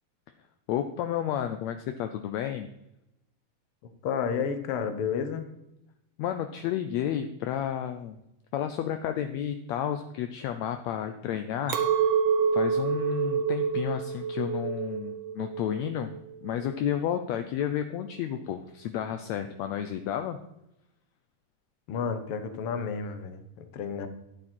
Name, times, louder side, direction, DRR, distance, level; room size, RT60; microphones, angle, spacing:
voice 1, 0.7-2.7 6.2-8.2 8.5-12.0 12.5-16.1 16.4-20.4, left 10 dB, 80° left, 8 dB, 1.5 m, -31 dB
voice 2, 4.0-5.5 21.9-24.1, left 6 dB, 65° left, 8 dB, 1.4 m, -31 dB
Chink clink, 11.7-17.1, right 6 dB, 80° right, 1.1 m, -28 dB
12.5 x 9.9 x 4.4 m, 0.87 s
omnidirectional pair, 3.9 m